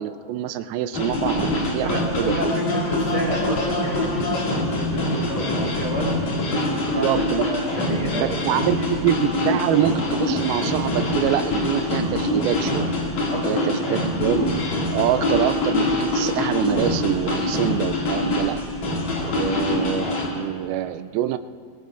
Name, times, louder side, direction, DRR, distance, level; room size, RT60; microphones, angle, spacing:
voice 1, 0.0-2.4 6.7-7.4 8.1-9.2 9.4-12.9 13.5-14.6 14.9-18.6 19.2-21.4, right 11 dB, 90° right, 10 dB, 2.4 m, -25 dB
sound 1, 0.9-20.3, left 1 dB, 55° left, 3.4 m, -24 dB
voice 2, 1.8-6.1 6.5-7.1 7.4-8.6 13.3-14.0, equal, 30° right, -3 dB, 3.0 m, -30 dB
22.5 x 20.5 x 2.5 m, 2.1 s
omnidirectional pair, 4.2 m